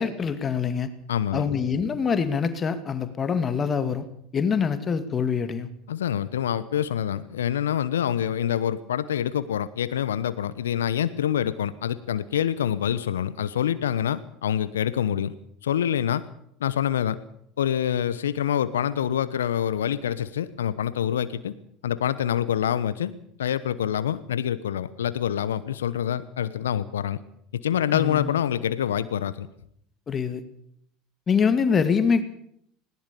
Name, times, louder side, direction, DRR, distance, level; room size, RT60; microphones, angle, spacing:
voice 1, 0.0-0.9 1.3-4.1 4.3-5.7 27.9-28.3 30.1-30.4 31.3-32.2, left 6 dB, 30° left, 10 dB, 2.3 m, -24 dB
voice 2, 1.1-1.5 5.9-15.3 15.6-16.2 16.6-17.2 17.6-21.5 21.8-23.1 23.4-27.2 27.5-29.5, left 9 dB, 80° left, 15 dB, 1.0 m, -26 dB
20.5 x 18.5 x 7.0 m, 0.69 s
hypercardioid pair, 75°, 0 cm